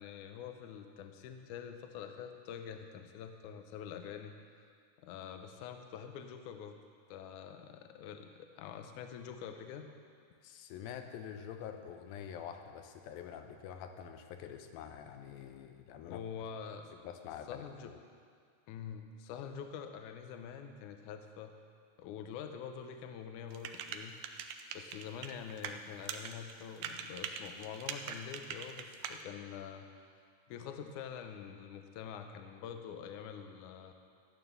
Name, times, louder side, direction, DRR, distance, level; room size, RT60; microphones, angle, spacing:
voice 1, 0.0-4.3 5.0-6.8 7.1-9.9 16.1-16.9 17.5-17.9 18.7-21.5 22.0-24.2 24.7-29.9 30.5-33.9, left 7 dB, 70° left, 6 dB, 2.0 m, -46 dB
voice 2, 10.4-16.2 17.0-18.0, left 8 dB, 90° left, 6 dB, 2.6 m, -46 dB
sound 1, 23.5-25.7 26.0-29.2, right 8 dB, 90° right, 1.6 m, -42 dB
13.5 x 9.2 x 6.7 m, 2.1 s
omnidirectional pair, 4.1 m